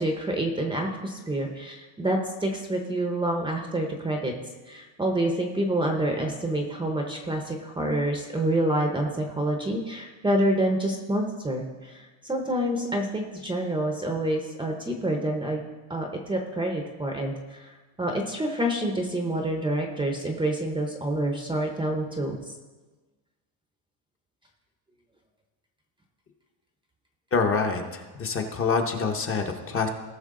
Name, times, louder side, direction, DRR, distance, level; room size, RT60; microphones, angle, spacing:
voice 1, 0.0-4.3 4.7-15.6 15.9-17.7 18.0-22.4, right 1 dB, 10° right, 2 dB, 0.7 m, -27 dB
voice 2, 27.3-29.9, left 4 dB, 25° left, 3 dB, 0.8 m, -26 dB
18.0 x 6.2 x 3.7 m, 1.3 s
cardioid pair, 165°, 48 cm